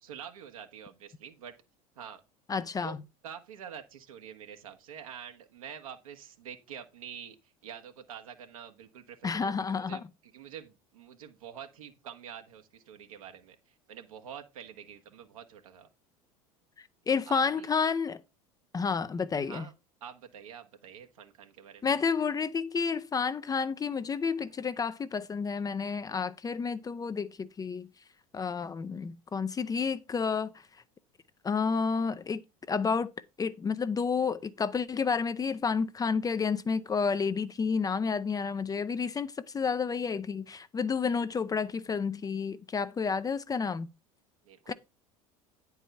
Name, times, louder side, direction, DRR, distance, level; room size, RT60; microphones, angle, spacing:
voice 1, 0.0-1.5 1.9-2.2 2.8-2.9 3.2-13.5 13.9-15.9 17.3-17.7 19.4-19.7 20.0-21.9 44.4-44.7, right 8 dB, 70° right, 1.5 m, -46 dB
voice 2, 2.5-3.0 9.2-10.0 16.8-18.2 18.7-19.7 21.8-27.9 28.3-30.5 31.4-32.4 32.7-33.1 33.4-43.9 44.7-44.8, left 5 dB, 20° left, 0.6 m, -30 dB
10.0 x 4.7 x 5.4 m
figure-of-eight pair, 70°, 18 cm